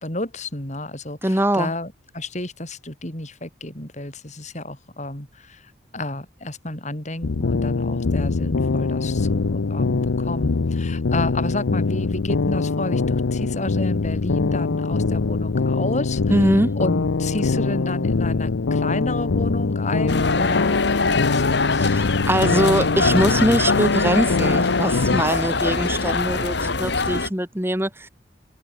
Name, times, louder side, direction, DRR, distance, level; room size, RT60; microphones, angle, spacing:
voice 1, 0.0-16.2 16.8-21.9, left 2 dB, 35° left, 4.2 m, -31 dB
voice 2, 1.2-1.7 16.3-16.8 21.8-28.1, right 1 dB, 10° right, 2.0 m, -22 dB
sound 1, 7.2-25.2, left 4 dB, 80° left, 0.6 m, -23 dB
sound 2, 20.1-27.3, left 3 dB, 55° left, 1.6 m, -23 dB
head